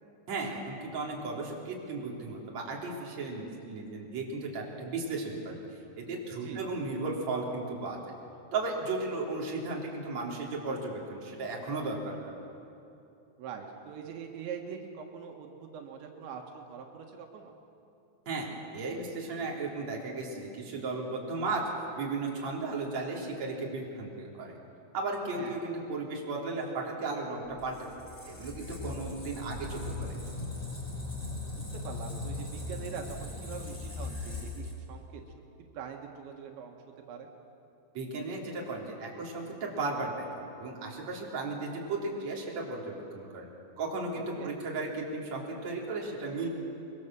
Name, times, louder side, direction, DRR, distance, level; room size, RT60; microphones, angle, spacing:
voice 1, 0.3-5.6 6.0-8.0 8.5-12.3 18.3-18.5 18.7-21.6 22.0-24.6 24.9-27.8 28.3-30.1 37.9-40.1 40.6-43.5 43.8-46.5, right 3 dB, 40° right, -2 dB, 4.3 m, -35 dB
voice 2, 13.4-17.6 25.4-25.7 31.6-35.2 35.7-36.8 37.1-37.3 44.1-44.5, right 7 dB, 90° right, 2 dB, 3.9 m, -43 dB
Squeak, 27.5-35.2, left 2 dB, 5° left, 5.0 m, -39 dB
24.5 x 23.5 x 7.6 m, 2.7 s
omnidirectional pair, 5.1 m